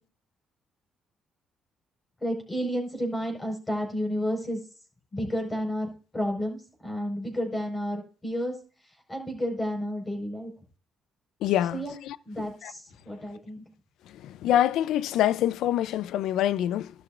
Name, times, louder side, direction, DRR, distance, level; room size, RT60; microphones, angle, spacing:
voice 1, 2.2-4.6 5.1-8.5 9.1-10.5 11.7-11.9 12.2-13.6, equal, 20° left, 4.9 m, -31 dB
voice 2, 11.4-11.8 12.6-12.7 14.2-16.9, left 12 dB, 85° left, 0.5 m, -25 dB
13.0 x 12.0 x 2.5 m
cardioid pair, 115°, 0 cm